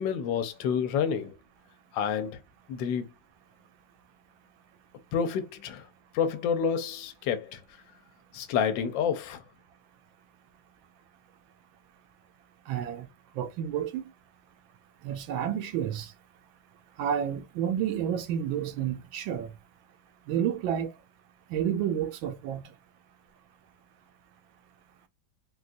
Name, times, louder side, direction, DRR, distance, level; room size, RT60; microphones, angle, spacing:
voice 1, 0.0-1.4 1.9-2.4 2.7-3.1 5.1-5.9 6.1-7.6 8.3-9.4, left 7 dB, 80° left, 1.3 m, -29 dB
voice 2, 12.7-13.1 13.4-14.0 15.0-16.1 17.0-19.5 20.3-20.9 21.5-22.6, right 9 dB, 80° right, 1.4 m, -30 dB
4.0 x 2.3 x 2.5 m
omnidirectional pair, 2.1 m